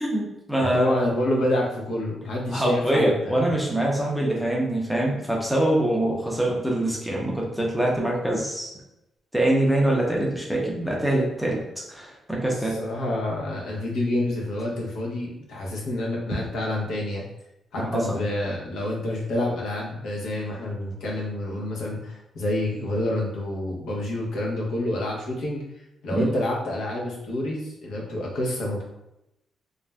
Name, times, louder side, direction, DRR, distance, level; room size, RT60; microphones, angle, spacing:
voice 1, 0.0-1.1 2.5-8.7 9.3-11.6 11.9-12.8 17.8-18.2 26.1-26.3, right 1 dB, ahead, -2 dB, 0.5 m, -24 dB
voice 2, 0.7-3.4 12.8-17.2 17.7-25.6 26.0-28.8, left 1 dB, 85° left, -3 dB, 0.7 m, -28 dB
2.4 x 2.1 x 3.3 m, 0.89 s
wide cardioid pair, 175°, 0 cm